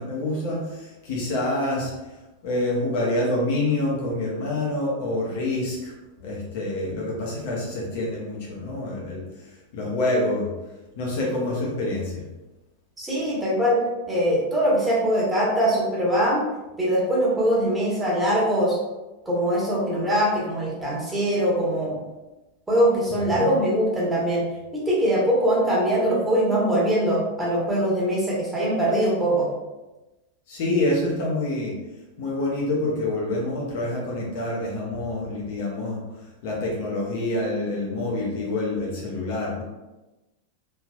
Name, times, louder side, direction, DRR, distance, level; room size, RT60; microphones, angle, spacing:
voice 1, 0.0-1.9 2.4-5.9 6.2-9.4 9.7-10.5 11.0-12.2 23.3-23.5 30.5-31.8 32.2-36.0 36.4-39.6, left 2 dB, 50° left, -3 dB, 0.8 m, -27 dB
voice 2, 13.0-13.8 14.1-16.4 16.8-18.8 19.3-22.0 22.7-24.4 24.7-29.5, equal, 10° right, -6 dB, 1.1 m, -22 dB
3.2 x 2.7 x 2.3 m, 1.0 s
figure-of-eight pair, 90°, 0 cm